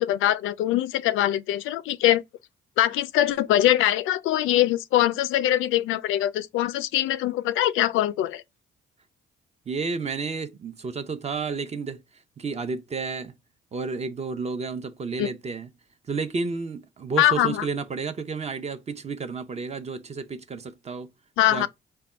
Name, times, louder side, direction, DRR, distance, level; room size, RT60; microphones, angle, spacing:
voice 1, 0.0-2.2 2.8-8.4 15.2-15.3 17.2-17.6 21.4-21.7, left 13 dB, 85° left, 0.4 m, -22 dB
voice 2, 9.7-12.0 12.4-13.3 13.7-15.7 16.1-21.1 21.5-21.7, right 4 dB, 35° right, 0.6 m, -31 dB
3.5 x 2.2 x 4.2 m
cardioid pair, 90°, 20 cm